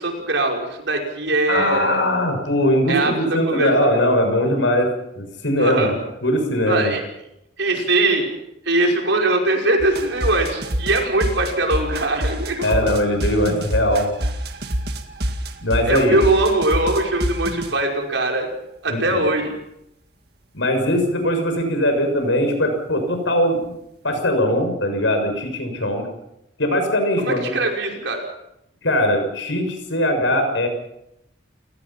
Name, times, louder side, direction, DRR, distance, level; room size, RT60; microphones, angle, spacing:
voice 1, 0.0-2.0 2.9-4.0 5.6-5.9 6.7-7.0 7.6-8.3 8.7-12.9 15.8-18.5 18.8-19.6 27.2-28.2, right 2 dB, 70° right, 1 dB, 5.6 m, -21 dB
voice 2, 1.5-5.9 6.2-6.9 12.6-14.1 15.6-16.2 18.9-19.2 20.5-23.7 24.0-26.1 26.6-27.6 28.8-30.7, left 1 dB, 75° left, 5 dB, 6.7 m, -20 dB
sound 1, 9.8-17.7, right 1 dB, 55° right, 2.0 m, -26 dB
29.0 x 18.5 x 5.9 m, 0.82 s
head